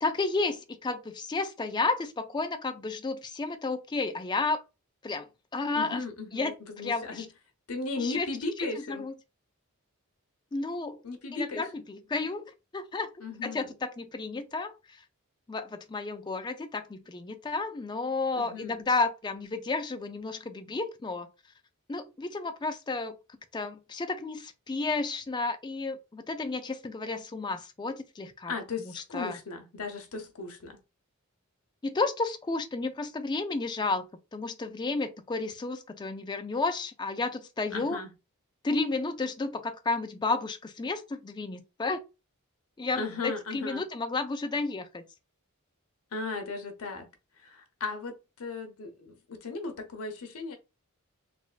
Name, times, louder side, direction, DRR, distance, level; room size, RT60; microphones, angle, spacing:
voice 1, 0.0-4.6 5.0-6.0 6.3-7.3 8.0-8.3 8.6-9.1 10.5-11.0 11.3-13.1 13.4-15.0 15.5-21.3 21.9-23.2 23.5-28.5 28.8-29.4 31.8-34.1 34.3-38.0 38.6-42.0 42.8-45.0, left 3 dB, 20° left, 0.3 m, -32 dB
voice 2, 5.7-7.3 7.7-9.1 11.0-11.6 13.2-13.7 18.3-18.8 28.5-30.8 37.7-38.1 42.9-43.8 46.1-47.1 47.4-50.5, left 3 dB, 80° left, 0.8 m, -36 dB
3.4 x 2.2 x 2.4 m
head